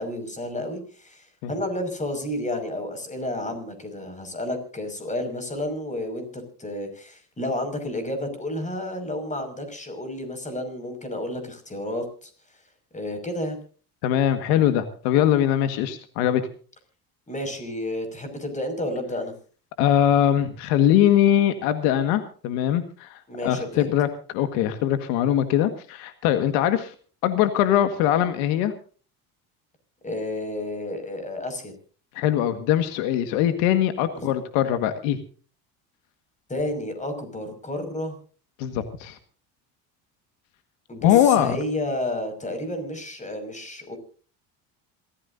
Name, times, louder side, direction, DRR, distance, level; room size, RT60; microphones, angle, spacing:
voice 1, 0.0-12.3 12.9-13.6 17.3-19.3 23.3-23.9 30.0-31.7 34.1-34.3 36.5-38.2 40.9-44.0, left 1 dB, 15° left, 8 dB, 5.7 m, -31 dB
voice 2, 14.0-16.4 19.8-26.9 27.2-28.7 32.2-35.2 38.6-39.2 41.0-41.6, left 11 dB, 85° left, 10 dB, 1.7 m, -22 dB
27.0 x 14.5 x 2.7 m, 0.40 s
supercardioid pair, 105°, 42 cm